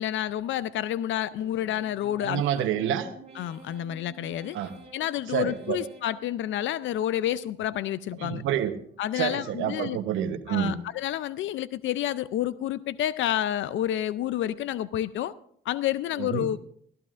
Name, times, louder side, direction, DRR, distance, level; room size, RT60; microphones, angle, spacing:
voice 1, 0.0-2.4 3.4-4.6 4.9-8.4 9.0-10.0 10.5-15.3 15.7-16.6, left 12 dB, 75° left, 17 dB, 0.5 m, -29 dB
sound 1, 1.4-7.2 7.6-8.3 8.7-9.4 9.8-10.4 10.9-11.5 12.0-12.5, right 2 dB, 30° right, 2.6 m, -52 dB
voice 2, 2.2-3.1 4.5-4.7 5.3-5.8 8.2-8.8 9.1-10.8 16.2-16.5, right 10 dB, 90° right, 9 dB, 1.0 m, -28 dB
19.5 x 14.5 x 2.5 m, 0.63 s
cardioid pair, 90°, 20 cm